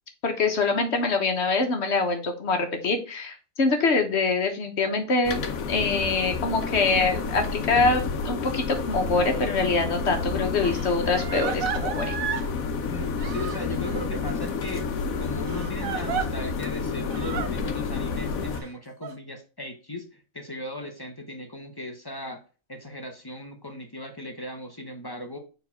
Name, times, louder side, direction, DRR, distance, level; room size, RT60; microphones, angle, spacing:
voice 1, 0.2-5.4 5.7-12.2, left 3 dB, 55° left, 5 dB, 1.4 m, -24 dB
sound 1, 5.2-18.6, left 4 dB, 85° left, 1.2 m, -30 dB
Crying sobbing, 9.7-9.8 10.6-12.5 13.2-14.0 15.5-16.3 17.1-17.5 18.5-19.1, right 8 dB, 80° right, 1.2 m, -33 dB
voice 2, 12.8-22.4 22.7-25.4, left 1 dB, 20° left, 4 dB, 0.7 m, -37 dB
4.6 x 3.9 x 5.6 m, 0.36 s
omnidirectional pair, 1.4 m